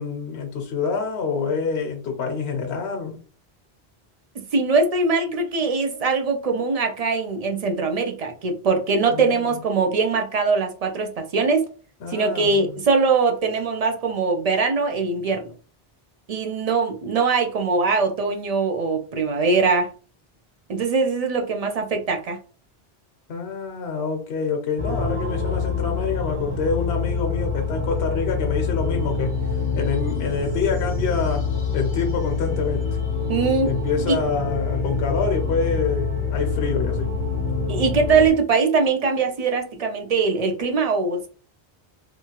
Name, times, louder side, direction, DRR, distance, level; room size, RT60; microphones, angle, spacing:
voice 1, 0.0-3.2 9.1-9.4 12.0-12.8 23.3-32.9 33.6-37.1, left 5 dB, 75° left, 3 dB, 0.8 m, -27 dB
voice 2, 4.4-11.7 12.1-15.5 16.3-19.9 20.7-22.4 33.3-33.7 34.1-34.2 37.7-41.3, right 4 dB, 50° right, 4 dB, 0.5 m, -22 dB
sound 1, 24.8-38.3, left 4 dB, 15° left, 0.5 m, -26 dB
2.8 x 2.3 x 2.8 m, 0.39 s
omnidirectional pair, 1.1 m